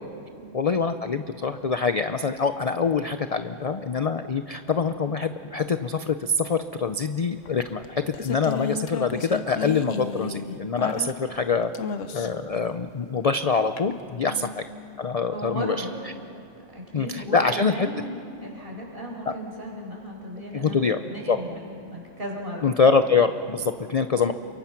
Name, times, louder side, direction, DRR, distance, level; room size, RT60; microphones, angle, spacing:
voice 1, 0.5-11.7 12.1-14.6 15.0-15.8 16.9-17.9 20.5-21.0 21.3-21.4 22.6-24.3, left 5 dB, 45° left, 10 dB, 0.5 m, -24 dB
sound 1, 7.5-11.4 11.7-12.5 13.8-13.9, left 5 dB, 80° left, 1.4 m, -32 dB
voice 2, 14.2-14.5 15.3-15.9 16.7-22.7, equal, 45° right, -1 dB, 5.2 m, -36 dB
28.5 x 23.5 x 5.9 m, 2.5 s
omnidirectional pair, 1.3 m